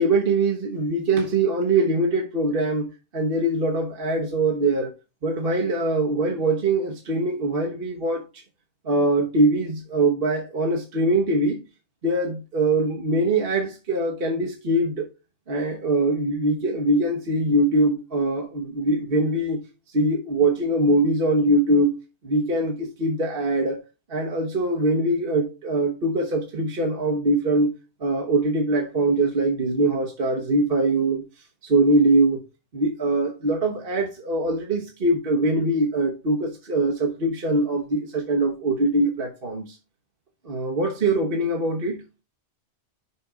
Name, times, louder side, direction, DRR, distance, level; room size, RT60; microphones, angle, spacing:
voice 1, 0.0-2.9 3.1-4.9 5.2-8.2 8.8-11.6 12.0-15.1 15.5-19.6 19.9-21.9 22.2-23.8 24.1-27.7 28.0-31.2 31.6-32.4 32.7-39.8 40.4-42.0, right 2 dB, 55° right, 1.5 m, -22 dB
5.9 x 5.2 x 4.8 m
omnidirectional pair, 1.2 m